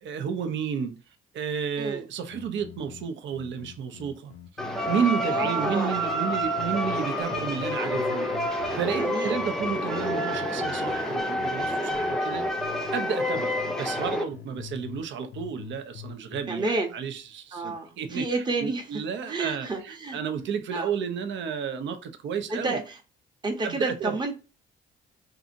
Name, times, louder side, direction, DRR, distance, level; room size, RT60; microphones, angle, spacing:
voice 1, 0.0-1.0 1.3-4.3 4.9-12.5 12.9-22.8 23.6-24.2, right 7 dB, 70° right, 0.6 m, -32 dB
sound 1, 2.3-5.0 5.3-7.1 7.3-13.0 13.3-15.1 15.3-16.4, left 9 dB, 85° left, 0.5 m, -44 dB
sound 2, 4.6-14.2, equal, ahead, 0.5 m, -28 dB
voice 2, 5.3-5.9 9.0-9.4 9.6-9.8 16.5-16.9 17.5-18.8 19.3-20.2 20.7-20.9 22.5-23.0 23.4-24.3, right 3 dB, 20° right, 0.8 m, -30 dB
2.7 x 2.5 x 2.5 m
cardioid pair, 90°, 20 cm